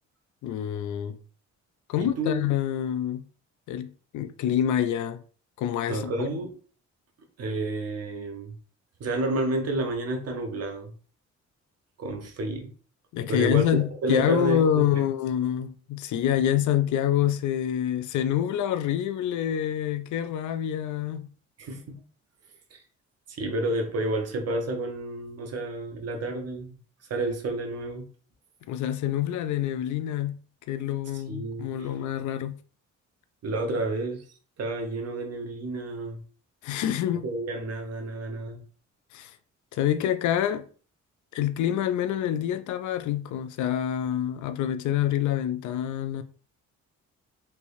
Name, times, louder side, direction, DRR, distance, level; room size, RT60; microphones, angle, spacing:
voice 1, 0.4-1.2 1.9-3.2 3.7-5.2 5.6-6.3 13.1-21.2 28.7-30.4 30.7-32.5 36.6-37.3 39.1-39.4 39.7-40.7 41.3-46.2, left 10 dB, 75° left, 0.5 m, -26 dB
voice 2, 2.0-2.4 5.9-6.5 7.4-8.5 9.0-10.9 12.0-12.7 13.3-13.7 14.0-14.8 21.6-22.0 22.7-22.8 23.3-26.8 27.1-28.1 31.3-31.9 33.4-34.2 34.6-36.2 37.2-38.6, right 2 dB, 55° right, 1.1 m, -30 dB
3.3 x 3.1 x 2.7 m
cardioid pair, 90°, 30 cm